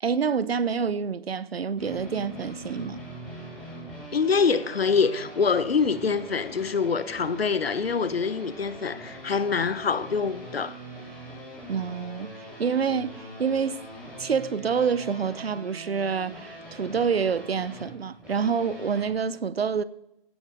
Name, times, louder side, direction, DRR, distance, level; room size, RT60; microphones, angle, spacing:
voice 1, 0.0-3.0 11.7-13.8 14.2-19.8, right 6 dB, 80° right, 0.9 m, -27 dB
sound 1, 1.8-19.1, right 1 dB, 5° right, 3.4 m, -42 dB
voice 2, 4.1-10.7, left 5 dB, 75° left, 1.1 m, -25 dB
16.5 x 12.0 x 3.6 m
hypercardioid pair, 180°, 30 cm